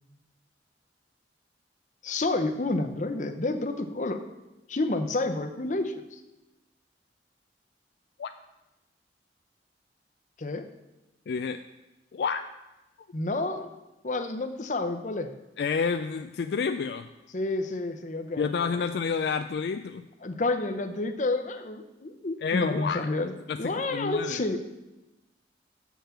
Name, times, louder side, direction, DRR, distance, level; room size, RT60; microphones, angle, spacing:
voice 1, 2.0-4.2 4.7-6.2 10.4-10.7 13.1-13.7 14.0-15.3 17.3-18.9 20.2-24.6, left 2 dB, 45° left, 7 dB, 0.7 m, -30 dB
voice 2, 11.3-11.6 12.1-12.4 15.6-17.1 18.4-20.0 22.4-23.1 23.5-24.4, left 5 dB, 65° left, 8 dB, 0.3 m, -29 dB
7.2 x 5.6 x 7.1 m, 1.0 s
head